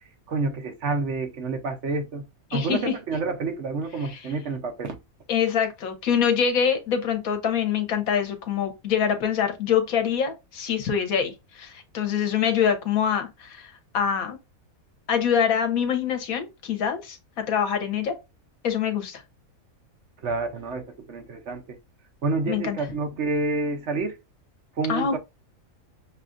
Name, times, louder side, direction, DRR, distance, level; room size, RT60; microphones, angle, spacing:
voice 1, 0.3-2.2 2.5-5.0 20.2-21.8 22.2-24.2 24.8-25.2, right 3 dB, 60° right, 1.0 m, -28 dB
voice 2, 2.5-2.9 4.0-4.2 5.3-14.4 15.1-17.2 17.5-18.2 18.6-19.2 22.5-22.8 24.9-25.2, left 7 dB, 80° left, 1.3 m, -25 dB
6.5 x 2.4 x 2.5 m
omnidirectional pair, 1.5 m